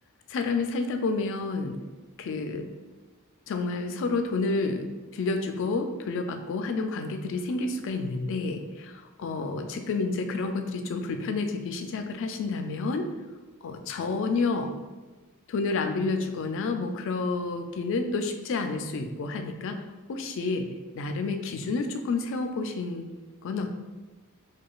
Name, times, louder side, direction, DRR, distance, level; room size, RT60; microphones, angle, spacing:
voice 1, 0.3-1.8 2.2-2.7 3.5-4.8 5.1-13.1 13.6-14.7 15.5-19.8 20.1-20.7 20.9-23.1 23.4-23.7, left 3 dB, 60° left, 6 dB, 0.3 m, -29 dB
4.8 x 2.2 x 2.3 m, 1.3 s
head